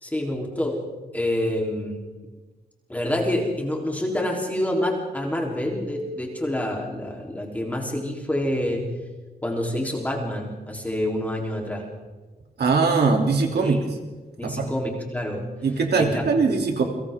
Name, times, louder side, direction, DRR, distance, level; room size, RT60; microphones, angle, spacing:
voice 1, 0.0-0.8 1.1-2.1 2.9-8.9 9.4-11.9 13.6-13.8 14.4-15.5 16.0-16.3, left 1 dB, 10° left, -1 dB, 3.5 m, -27 dB
voice 2, 12.6-13.8 14.4-14.7 15.6-16.8, right 4 dB, 80° right, 2 dB, 3.0 m, -21 dB
29.5 x 24.5 x 3.7 m, 1.3 s
wide cardioid pair, 160°, 17 cm